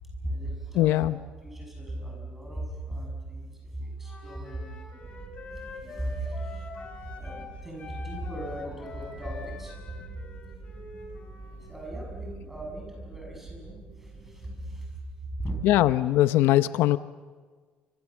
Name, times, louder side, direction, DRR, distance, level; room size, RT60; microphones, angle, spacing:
voice 1, 0.2-1.1 1.4-5.1 5.8-6.7 7.2-9.8 11.7-14.9 15.4-15.6, right 1 dB, 5° right, 0 dB, 6.7 m, -37 dB
voice 2, 0.7-1.2 15.6-17.0, left 14 dB, 80° left, 14 dB, 0.7 m, -21 dB
Wind instrument woodwind instrument, 4.0-7.5 7.8-11.6, left 4 dB, 30° left, 3.8 m, -45 dB
sound 1, 5.0-14.8, right 3 dB, 40° right, 6.5 m, -46 dB
29.5 x 26.0 x 7.3 m, 1.5 s
cardioid pair, 175°, 4 cm